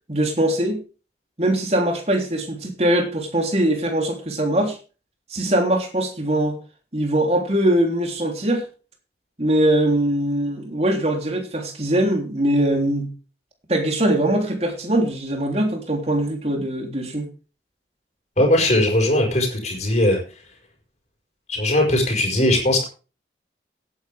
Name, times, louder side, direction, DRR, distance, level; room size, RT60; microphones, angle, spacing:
voice 1, 0.1-0.8 1.4-4.8 5.3-6.6 6.9-8.7 9.4-13.1 13.7-17.3, right 1 dB, 35° right, 3 dB, 3.3 m, -21 dB
voice 2, 18.4-20.2 21.5-22.9, left 1 dB, 40° left, 0 dB, 5.4 m, -19 dB
16.5 x 9.8 x 3.5 m, 0.34 s
head